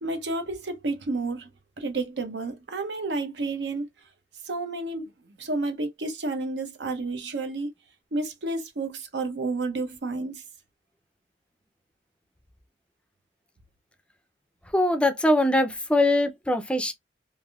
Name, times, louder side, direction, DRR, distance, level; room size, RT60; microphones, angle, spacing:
voice 1, 0.0-1.5 1.8-3.9 4.5-5.1 5.4-7.7 8.1-10.4, right 2 dB, 75° right, 0.7 m, -30 dB
voice 2, 14.7-16.9, left 1 dB, 5° left, 0.4 m, -22 dB
3.3 x 2.6 x 2.2 m
head